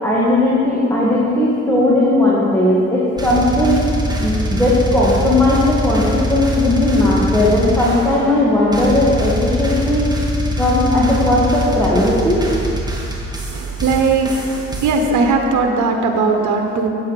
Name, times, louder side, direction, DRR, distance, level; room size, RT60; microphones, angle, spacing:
voice 1, 0.0-3.8 4.2-10.0 10.6-12.4, left 1 dB, 10° left, -7 dB, 2.0 m, -16 dB
sound 1, 3.2-8.4 8.7-15.1, equal, 15° right, 1.8 m, -23 dB
voice 2, 13.5-14.3 14.8-16.9, right 4 dB, 75° right, 3 dB, 1.2 m, -17 dB
8.7 x 8.5 x 5.3 m, 2.8 s
cardioid pair, 90°, 30 cm